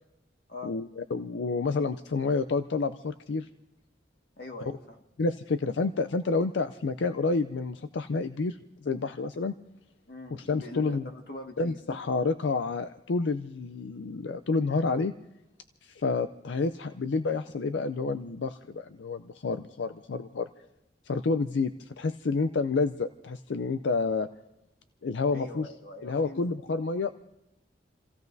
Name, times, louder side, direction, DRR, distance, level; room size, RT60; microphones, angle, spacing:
voice 1, 0.6-3.5 4.7-4.8 5.2-9.5 10.3-11.1 11.6-15.1 15.8-20.5 21.0-24.3 25.0-25.7 26.0-27.1, left 4 dB, 85° left, 10 dB, 0.5 m, -29 dB
voice 2, 4.4-5.0 10.1-11.8 25.3-26.4, left 2 dB, 60° left, 3 dB, 1.7 m, -42 dB
29.5 x 15.5 x 2.7 m, 0.92 s
head